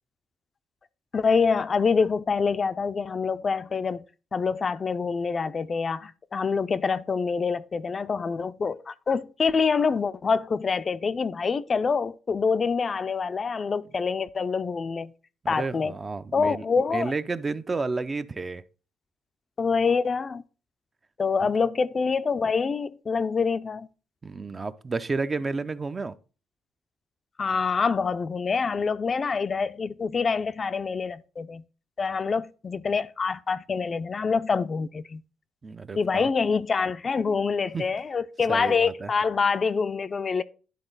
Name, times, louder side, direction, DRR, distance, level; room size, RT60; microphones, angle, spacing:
voice 1, 1.1-4.0 4.3-15.1 15.5-15.9 16.3-17.1 19.6-20.4 21.2-23.9 27.4-31.6 32.0-35.2 36.0-40.4, left 5 dB, 40° left, 0.4 m, -26 dB
voice 2, 15.4-16.6 16.9-18.6 21.4-21.5 24.2-26.2 35.6-36.3 37.7-37.8 38.5-39.1, right 3 dB, 30° right, 0.5 m, -31 dB
11.0 x 3.9 x 3.9 m
cardioid pair, 90°, 0 cm